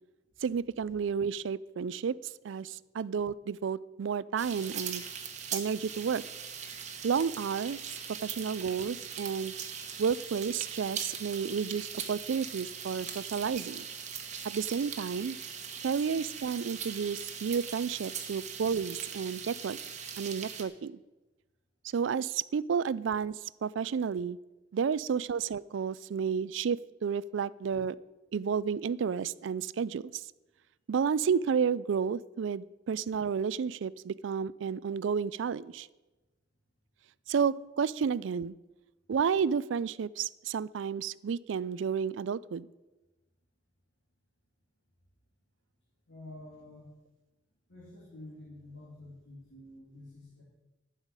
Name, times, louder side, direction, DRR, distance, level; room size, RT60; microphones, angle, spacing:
voice 1, 0.4-2.2 2.4-5.0 5.5-6.2 7.0-7.8 8.2-9.5 10.0-13.9 14.4-15.4 15.8-19.8 20.2-21.0 21.9-24.4 24.7-28.0 28.3-30.3 30.9-35.9 37.3-38.6 39.1-42.7, right 6 dB, 75° right, 20 dB, 0.4 m, -31 dB
sound 1, 4.4-20.6, right 7 dB, 35° right, 1.1 m, -40 dB
voice 2, 46.1-46.9 47.7-50.4, left 1 dB, 70° left, -5 dB, 2.8 m, -49 dB
11.5 x 5.7 x 8.9 m, 1.1 s
head